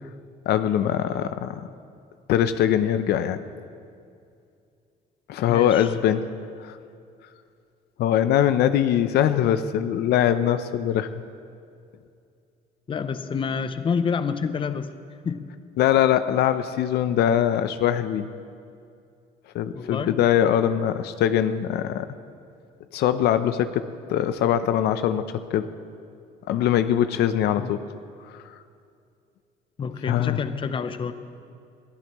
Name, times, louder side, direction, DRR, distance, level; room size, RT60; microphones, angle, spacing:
voice 1, 0.5-1.7 2.3-3.4 5.3-6.3 6.6-6.8 8.0-11.1 15.8-18.3 19.5-22.1 22.9-25.7 26.5-27.8 28.3-28.4 30.1-30.4, left 10 dB, 75° left, 11 dB, 0.6 m, -22 dB
voice 2, 5.5-5.9 12.9-14.9 15.2-15.5 19.7-20.2 27.6-27.7 29.8-31.1, left 6 dB, 30° left, 11 dB, 0.7 m, -28 dB
22.5 x 15.0 x 3.1 m, 2.4 s
cardioid pair, 110°, 17 cm